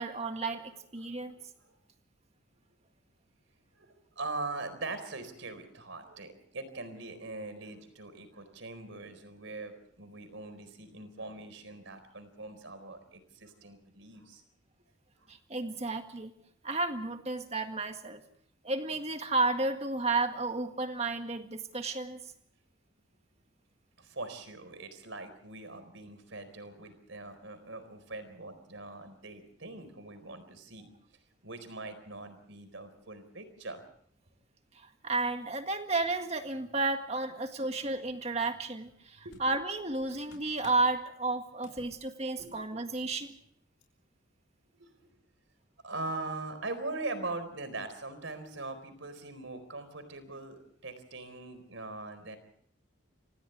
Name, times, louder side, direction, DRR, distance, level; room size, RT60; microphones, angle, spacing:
voice 1, 0.0-1.4 15.3-16.3 16.6-18.2 18.6-22.2 35.0-43.4, right 3 dB, 30° right, 6 dB, 1.8 m, -32 dB
voice 2, 1.0-1.8 3.7-14.4 24.0-30.9 31.4-33.8 39.2-39.4 42.4-42.6 44.7-45.0 45.8-52.4, right 2 dB, 70° right, 10 dB, 4.3 m, -42 dB
sound 1, 38.9-39.0 39.3-40.9 41.6-42.0 42.3-42.6 42.9-43.1 43.8-43.9, left 2 dB, 90° left, 5.8 m, -56 dB
29.5 x 26.5 x 3.4 m, 0.63 s
head